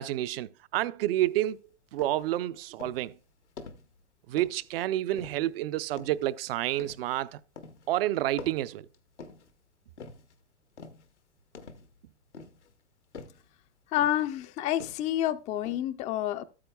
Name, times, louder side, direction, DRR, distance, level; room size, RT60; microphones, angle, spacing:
voice 1, 0.0-1.6 1.9-3.2 4.3-7.4 7.9-8.9, right 14 dB, 60° right, 0.6 m, -29 dB
sound 1, 1.2-1.5 2.0-2.3 2.8-3.1 3.6-3.9 4.4-4.7 5.1-5.5 6.0-6.3 6.8-7.2 7.6-7.9 8.4-9.5 10.0-10.3 10.8-11.1 11.5-12.0 12.3-12.7 13.1-13.5 14.0-14.3 14.8-15.2 15.6-15.8, left 4 dB, 90° left, 1.2 m, -46 dB
voice 2, 13.9-16.5, left 12 dB, 20° left, 0.4 m, -29 dB
13.0 x 8.6 x 2.2 m
hypercardioid pair, 105°, 34 cm